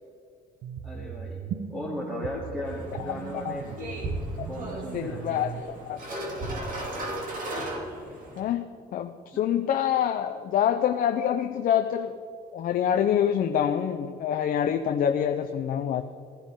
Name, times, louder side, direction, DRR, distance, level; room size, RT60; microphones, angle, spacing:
sound 1, 0.6-5.6, right 8 dB, 70° right, 0.8 m, -38 dB
voice 1, 0.8-3.7 4.4-5.4 9.3-9.4, left 1 dB, 5° right, -7 dB, 2.9 m, -36 dB
sound 2, 2.6-8.4, right 1 dB, 50° right, 2.9 m, -36 dB
voice 2, 3.3-4.0 4.4-4.5 4.9-5.5 5.8-6.0 8.4-12.2 12.5-16.0, left 9 dB, 60° left, 6 dB, 0.7 m, -26 dB
15.5 x 14.5 x 3.8 m, 2.4 s
cardioid pair, 110°, 17 cm